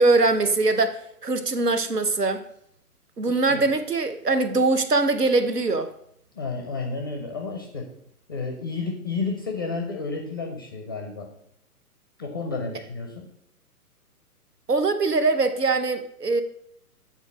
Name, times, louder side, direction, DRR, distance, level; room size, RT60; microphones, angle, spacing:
voice 1, 0.0-2.4 3.2-5.9 14.7-16.4, right 3 dB, 85° right, 10 dB, 0.9 m, -22 dB
voice 2, 3.3-3.6 6.4-7.9 8.3-11.3 12.2-13.3, left 4 dB, 15° left, 2 dB, 0.4 m, -31 dB
8.5 x 4.0 x 4.9 m, 0.71 s
figure-of-eight pair, 125°, 46 cm